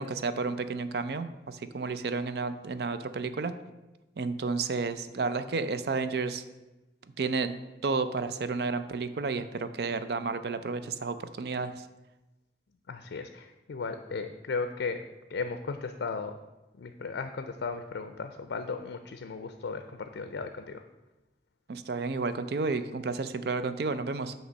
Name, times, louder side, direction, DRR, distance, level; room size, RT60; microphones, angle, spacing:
voice 1, 0.0-3.5 4.2-6.4 7.2-7.5 7.8-11.8 21.7-24.3, right 4 dB, 65° right, 11 dB, 0.4 m, -31 dB
voice 2, 12.9-15.0 15.3-16.3 16.8-19.8 20.1-20.8, left 4 dB, 90° left, 8 dB, 0.4 m, -35 dB
8.0 x 3.1 x 6.2 m, 1.0 s
head